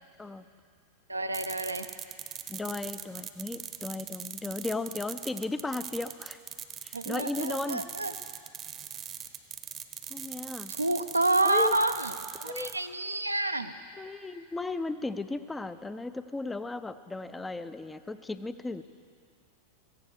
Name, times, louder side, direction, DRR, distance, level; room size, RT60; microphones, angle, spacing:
voice 1, 1.1-1.9 6.9-8.1 10.7-12.1 12.4-13.7, right 2 dB, 85° right, 9 dB, 0.7 m, -28 dB
sound 1, 1.3-12.8, right 9 dB, 30° right, 0.8 m, -41 dB
voice 2, 2.5-6.4 6.8-7.8 10.1-10.7 11.4-11.8 12.4-12.8 14.0-18.8, left 2 dB, 10° left, 12 dB, 0.5 m, -35 dB
17.5 x 15.0 x 4.9 m, 2.2 s
figure-of-eight pair, 90°, 0 cm